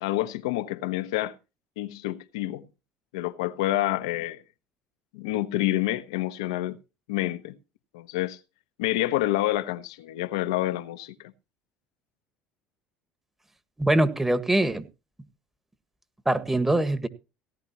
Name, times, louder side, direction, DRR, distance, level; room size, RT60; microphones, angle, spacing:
voice 1, 0.0-1.4 1.8-2.7 3.1-4.4 5.1-6.8 7.1-7.6 7.9-8.4 8.8-11.3, left 15 dB, 90° left, 1.1 m, -28 dB
voice 2, 13.8-14.8 16.3-17.1, right 1 dB, 10° right, 1.6 m, -23 dB
17.5 x 10.5 x 3.0 m
supercardioid pair, 90°, 3 cm